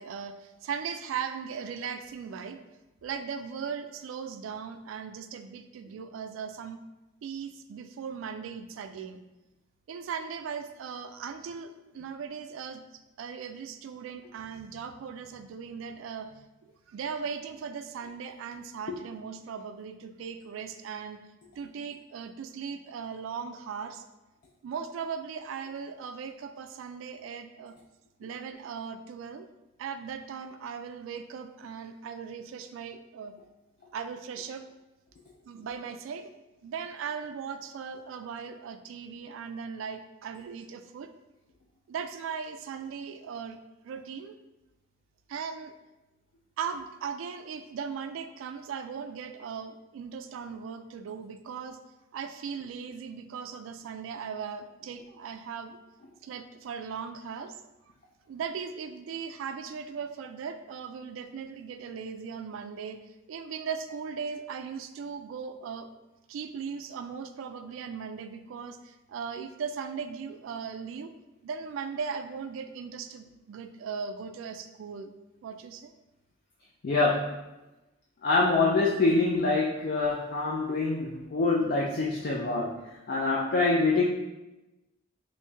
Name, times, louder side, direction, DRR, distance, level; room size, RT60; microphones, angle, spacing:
voice 1, 0.0-2.6 3.0-6.8 7.2-9.2 9.9-12.8 13.2-21.2 21.6-24.0 24.6-27.7 28.2-29.5 29.8-33.3 33.9-34.6 35.5-36.3 36.6-41.1 41.9-43.6 43.8-44.4 45.3-45.7 46.6-51.8 52.1-55.8 56.2-57.6 58.3-63.0 63.3-65.9 66.3-71.1 71.4-75.1 75.4-75.9, right 6 dB, 80° right, 10 dB, 0.3 m, -38 dB
voice 2, 76.8-77.4 78.2-82.8 83.1-84.0, left 3 dB, 50° left, -3 dB, 0.4 m, -25 dB
3.0 x 2.6 x 3.3 m, 1.0 s
head